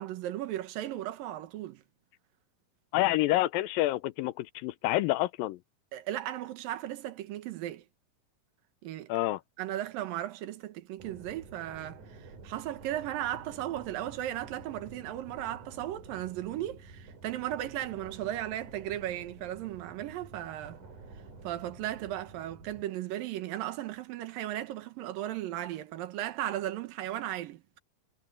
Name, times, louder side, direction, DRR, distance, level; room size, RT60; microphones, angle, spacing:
voice 1, 0.0-1.8 5.9-7.8 8.8-9.1 9.6-20.8 21.4-27.8, right 13 dB, 80° right, 3.0 m, -36 dB
voice 2, 2.9-5.6 9.1-9.4, left 16 dB, 85° left, 2.4 m, -28 dB
sound 1, 11.0-22.9, right 3 dB, 60° right, 6.9 m, -50 dB
omnidirectional pair, 4.0 m